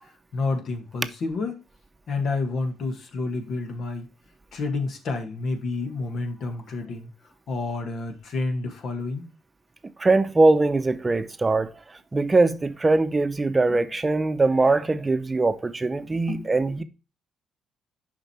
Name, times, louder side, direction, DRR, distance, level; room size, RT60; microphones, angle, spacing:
voice 1, 0.3-1.6 2.1-4.1 4.5-7.1 7.5-9.3 16.1-16.5, left 3 dB, 65° left, 1.7 m, -29 dB
voice 2, 10.0-16.8, right 3 dB, 25° right, 0.7 m, -22 dB
6.6 x 5.2 x 4.4 m
supercardioid pair, 60°, 0 cm